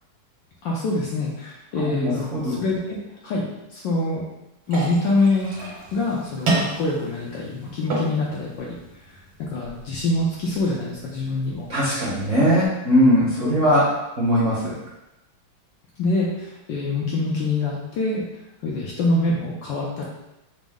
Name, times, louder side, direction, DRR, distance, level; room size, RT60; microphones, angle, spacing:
voice 1, 0.6-4.2 4.7-5.6 5.9-11.7 13.4-13.6 16.0-18.2 18.6-20.0, left 2 dB, 70° left, -4 dB, 1.2 m, -25 dB
voice 2, 1.8-2.6 11.7-13.9 14.2-14.7, equal, 45° right, -8 dB, 1.0 m, -20 dB
sound 1, 4.6-12.7, right 2 dB, 70° right, 1.8 m, -32 dB
5.1 x 2.0 x 3.5 m, 0.93 s
omnidirectional pair, 2.4 m